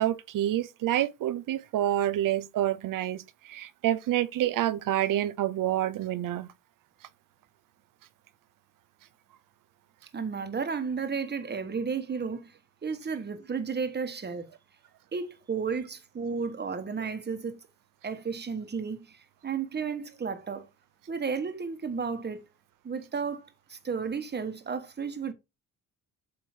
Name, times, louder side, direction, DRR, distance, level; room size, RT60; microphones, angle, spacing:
voice 1, 0.0-6.5, right 12 dB, 70° right, 0.8 m, -28 dB
voice 2, 10.1-12.5 12.8-14.5 15.1-17.6 18.0-20.7 21.1-22.4 22.8-25.3, right 5 dB, 30° right, 1.3 m, -33 dB
8.1 x 3.0 x 5.0 m
cardioid pair, 85°, 34 cm